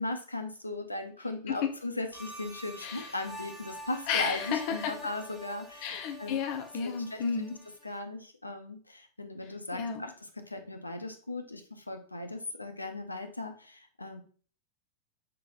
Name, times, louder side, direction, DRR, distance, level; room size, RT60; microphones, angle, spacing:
voice 1, 0.0-5.9 6.2-6.4 6.8-7.2 7.8-14.2, left 2 dB, 85° left, 6 dB, 0.5 m, -38 dB
sound 1, 2.1-8.0, equal, 10° right, 1.0 m, -47 dB
voice 2, 4.1-4.9 5.8-7.6 9.7-10.0, left 6 dB, 45° left, 5 dB, 0.8 m, -32 dB
5.9 x 3.2 x 2.5 m, 0.42 s
figure-of-eight pair, 90°, 0 cm